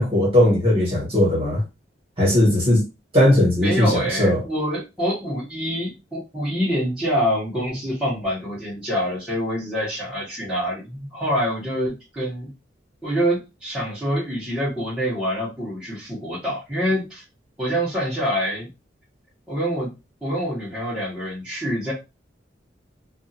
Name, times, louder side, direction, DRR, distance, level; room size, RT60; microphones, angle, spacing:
voice 1, 0.0-1.6 2.2-2.8 3.1-4.4, left 1 dB, 30° right, 1.4 m, -18 dB
voice 2, 3.6-12.5 13.0-17.2 17.6-18.7 19.5-19.9 20.2-21.9, equal, 5° right, 1.1 m, -26 dB
2.6 x 2.5 x 2.7 m
head